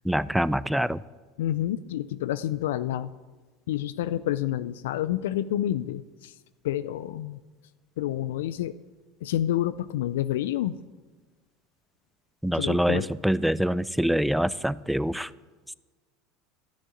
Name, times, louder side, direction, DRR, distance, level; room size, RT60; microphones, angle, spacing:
voice 1, 0.0-1.0 12.4-15.3, equal, ahead, 19 dB, 0.4 m, -25 dB
voice 2, 1.4-3.1 3.7-6.4 6.6-7.4 8.0-8.7 9.2-10.8 12.6-13.1, left 12 dB, 75° left, 16 dB, 0.3 m, -28 dB
12.5 x 6.3 x 9.0 m, 1.3 s
hypercardioid pair, 85°, 0 cm